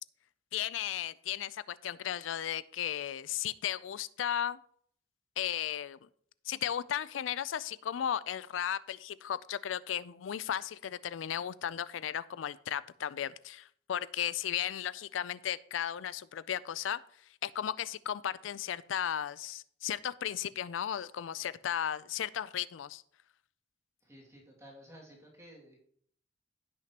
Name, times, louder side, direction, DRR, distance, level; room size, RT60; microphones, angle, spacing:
voice 1, 0.5-4.6 5.4-6.0 6.4-17.0 17.4-23.0, left 10 dB, 85° left, 18 dB, 0.4 m, -35 dB
voice 2, 24.0-25.9, equal, 15° right, -3 dB, 2.3 m, -54 dB
16.0 x 6.1 x 2.9 m, 0.63 s
head